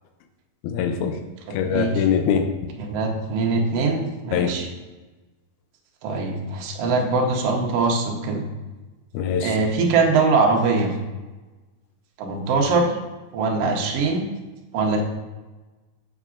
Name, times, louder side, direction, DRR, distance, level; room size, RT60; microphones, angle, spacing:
voice 1, 0.6-1.2 1.5-2.7 4.3-4.6 9.1-9.6, left 7 dB, 80° left, 6 dB, 1.8 m, -23 dB
voice 2, 1.5-2.0 2.8-4.7 6.0-8.5 9.4-10.9 12.2-13.0 13.3-14.3 14.7-15.0, right 3 dB, 75° right, 1 dB, 1.4 m, -22 dB
7.0 x 5.8 x 2.4 m, 1.2 s
omnidirectional pair, 3.8 m